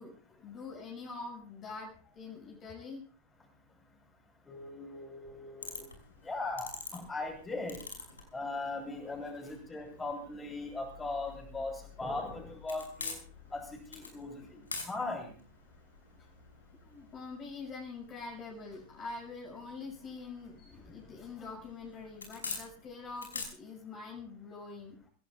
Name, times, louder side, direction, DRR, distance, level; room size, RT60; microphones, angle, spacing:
voice 1, 0.0-3.0 9.4-9.5 14.0-14.2 16.2-16.3 16.8-25.0, left 4 dB, 30° left, 0 dB, 6.1 m, -45 dB
voice 2, 4.5-5.9 6.2-7.8 8.3-13.2 13.5-15.3, left 2 dB, 15° left, 3 dB, 6.4 m, -39 dB
sound 1, 5.6-23.4, left 4 dB, 75° left, 6.1 m, -48 dB
27.0 x 17.0 x 2.4 m, 0.40 s
figure-of-eight pair, 90°, 0 cm